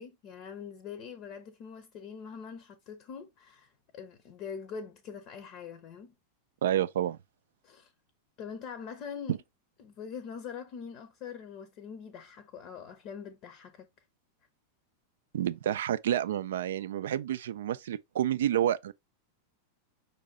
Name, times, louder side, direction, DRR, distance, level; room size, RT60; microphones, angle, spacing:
voice 1, 0.0-6.1 7.6-7.9 8.4-9.4 9.8-13.9, left 6 dB, 40° left, 0.7 m, -43 dB
voice 2, 6.6-7.2 9.3-9.4 15.3-18.9, right 11 dB, 60° right, 0.4 m, -29 dB
5.5 x 2.7 x 3.6 m
figure-of-eight pair, 90°, 0 cm